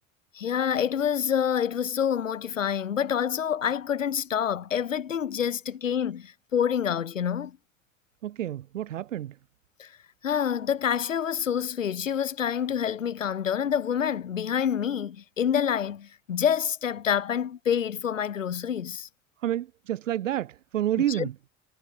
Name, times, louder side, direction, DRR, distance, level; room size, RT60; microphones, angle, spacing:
voice 1, 0.3-7.6 9.8-9.9 10.2-19.1 21.1-21.3, left 8 dB, 80° left, 1.5 m, -27 dB
voice 2, 8.2-9.4 19.4-21.3, right 12 dB, 75° right, 1.3 m, -29 dB
figure-of-eight pair, 55°, 38 cm